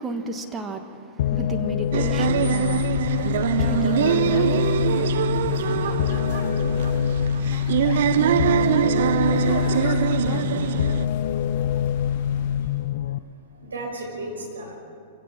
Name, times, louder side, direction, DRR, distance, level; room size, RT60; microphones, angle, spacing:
voice 1, 0.0-5.4, right 3 dB, 15° right, 5 dB, 1.6 m, -35 dB
sound 1, 1.2-13.2, left 10 dB, 55° left, 0.4 m, -25 dB
sound 2, 1.8-12.9, left 6 dB, 40° left, 2.4 m, -37 dB
sound 3, 1.9-11.0, right 10 dB, 55° right, 0.6 m, -23 dB
voice 2, 13.0-14.8, right 2 dB, 75° right, 0 dB, 5.6 m, -36 dB
27.0 x 16.5 x 6.0 m, 2.5 s
figure-of-eight pair, 105°, 0 cm